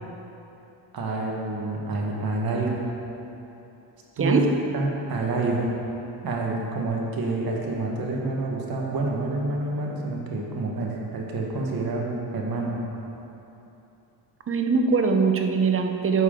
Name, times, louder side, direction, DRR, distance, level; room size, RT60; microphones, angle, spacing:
voice 1, 0.9-2.8 4.2-4.4 4.7-5.7 6.2-12.8, right 2 dB, 50° right, -1 dB, 1.6 m, -28 dB
voice 2, 14.5-16.2, right 5 dB, 30° right, 4 dB, 0.7 m, -22 dB
10.5 x 6.3 x 3.8 m, 3.0 s
cardioid pair, 105°, 46 cm